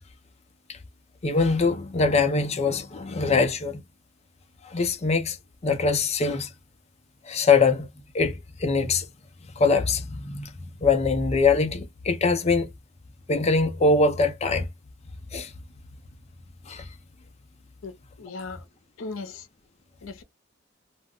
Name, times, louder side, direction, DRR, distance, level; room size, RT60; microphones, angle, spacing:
voice 1, 1.2-3.8 4.6-5.4 5.6-6.5 7.2-7.9 8.1-9.1 9.6-10.5 10.8-12.7 13.3-14.7 15.3-15.5 16.7-16.9, left 4 dB, 30° left, 0.5 m, -23 dB
voice 2, 17.8-18.6 19.0-19.5 20.0-20.2, left 3 dB, 80° left, 0.6 m, -37 dB
2.3 x 2.0 x 3.4 m
head